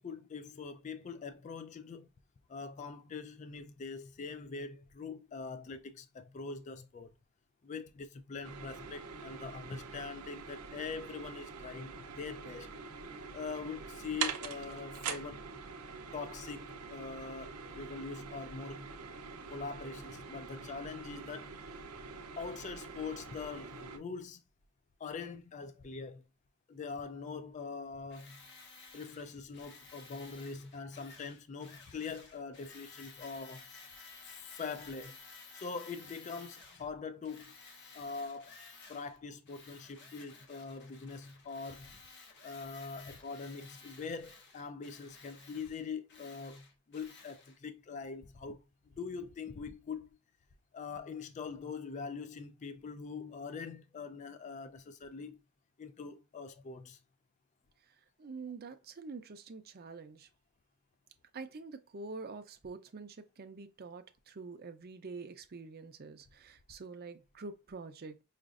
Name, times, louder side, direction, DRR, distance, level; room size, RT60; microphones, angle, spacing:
voice 1, 0.0-2.1 2.5-7.1 7.6-12.7 13.3-15.5 16.1-18.9 19.5-21.5 22.4-24.4 25.0-26.2 26.7-28.4 28.9-33.6 34.5-35.2 35.5-37.5 37.9-38.6 38.9-42.0 42.4-48.6 49.0-50.1 50.7-55.4 55.8-57.0, left 5 dB, 35° left, 0.3 m, -43 dB
sound 1, 8.4-24.0, right 5 dB, 85° right, 0.6 m, -44 dB
Tools, 28.1-36.9 37.2-39.2 39.4-47.6, left 4 dB, 50° left, 0.9 m, -55 dB
voice 2, 57.8-60.3 61.3-68.2, right 4 dB, 45° right, 0.5 m, -46 dB
5.0 x 2.4 x 2.4 m
head